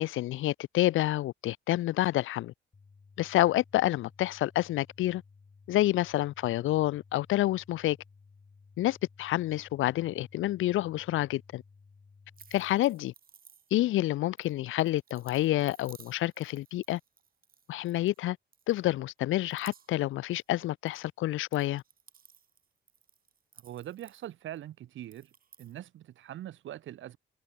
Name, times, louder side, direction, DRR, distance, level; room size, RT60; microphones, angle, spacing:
voice 1, 0.0-2.5 3.2-5.2 5.7-8.0 8.8-11.6 12.5-13.1 13.7-17.0 17.7-18.4 18.7-21.8, left 15 dB, 85° left, 1.4 m, -28 dB
sound 1, 2.7-12.7, left 4 dB, 30° left, 6.9 m, -57 dB
Cracking and Popping Sound, 12.3-14.0 14.4-18.2 18.5-19.1 19.4-21.0 21.3-24.6 25.0-25.8, right 7 dB, 45° right, 5.5 m, -57 dB
voice 2, 23.6-25.3 25.6-27.2, right 12 dB, 75° right, 2.1 m, -42 dB
cardioid pair, 90°, 20 cm